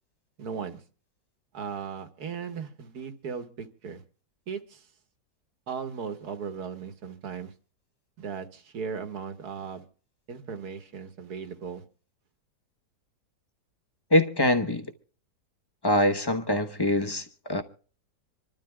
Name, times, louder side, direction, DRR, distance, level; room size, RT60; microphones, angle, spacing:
voice 1, 0.4-0.8 1.5-4.0 4.5-4.9 5.7-7.5 8.2-9.8 10.3-11.8, right 6 dB, 65° right, 1.9 m, -37 dB
voice 2, 14.1-14.9 15.8-17.6, left 1 dB, 20° left, 0.8 m, -24 dB
27.0 x 12.5 x 2.3 m
omnidirectional pair, 1.8 m